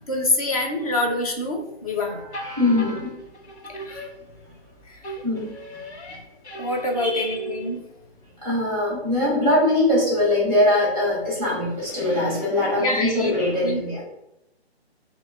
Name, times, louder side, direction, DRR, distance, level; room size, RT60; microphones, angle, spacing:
voice 1, 0.1-2.2 3.8-4.0 6.6-7.8 12.8-13.3 13.6-13.8, left 1 dB, 35° left, 1 dB, 0.7 m, -25 dB
voice 2, 2.0-3.1 5.2-5.5 6.9-7.4 8.4-14.0, left 1 dB, 10° left, -4 dB, 1.2 m, -22 dB
sound 1, 2.3-4.7 5.0-7.9, right 2 dB, 85° left, 1.1 m, -37 dB
2.9 x 2.8 x 3.7 m, 0.84 s
hypercardioid pair, 155°, 33 cm